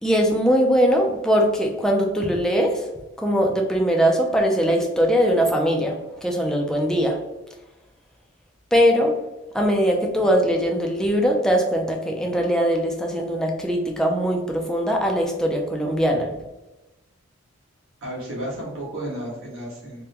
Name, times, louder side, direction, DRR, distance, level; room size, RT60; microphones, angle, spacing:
voice 1, 0.0-2.8 3.2-7.2 8.7-9.1 9.5-16.3, equal, 5° left, 1 dB, 0.4 m, -21 dB
voice 2, 18.0-20.0, right 1 dB, 75° right, -5 dB, 1.3 m, -32 dB
3.6 x 2.1 x 2.8 m, 1.0 s
head